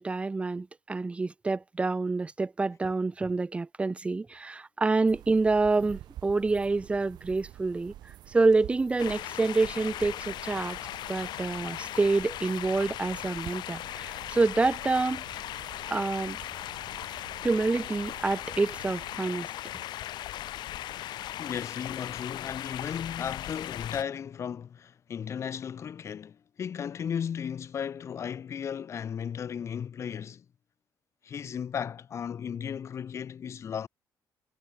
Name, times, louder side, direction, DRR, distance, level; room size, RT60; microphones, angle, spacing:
voice 1, 0.0-7.9 8.3-10.8 11.1-15.4 15.9-16.4 17.4-19.5, right 3 dB, 15° right, 2.0 m, -27 dB
sound 1, 5.1-19.2, right 13 dB, 80° right, 4.5 m, -49 dB
sound 2, 9.0-24.0, left 14 dB, 85° left, 6.0 m, -38 dB
voice 2, 21.4-30.4 31.2-33.9, left 8 dB, 40° left, 2.5 m, -35 dB
cardioid pair, 170°, 7 cm